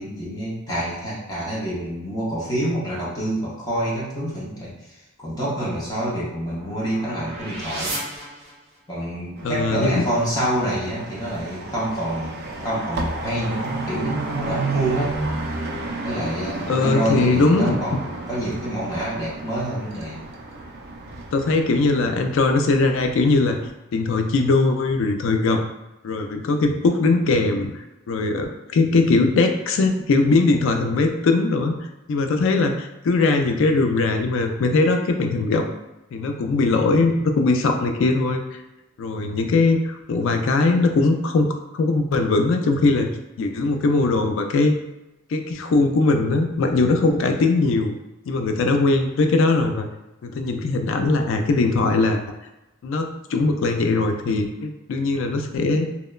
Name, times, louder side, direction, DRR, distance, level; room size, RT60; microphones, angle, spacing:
voice 1, 0.0-4.7 5.2-8.0 8.9-15.2 16.0-20.2, right 1 dB, 15° left, -7 dB, 0.6 m, -27 dB
sound 1, 5.6-9.0, right 1 dB, 30° right, 0.8 m, -35 dB
voice 2, 9.4-10.1 16.7-17.8 21.3-23.6 23.9-25.6 26.0-31.8 32.1-35.6 36.1-38.6 39.0-43.1 43.4-44.7 45.3-47.9 48.3-49.9 50.2-52.2 52.8-55.9, left 3 dB, 60° left, 5 dB, 0.3 m, -20 dB
sound 2, 9.4-23.7, right 2 dB, 50° right, 0.3 m, -32 dB
2.8 x 2.1 x 2.2 m, 0.99 s
head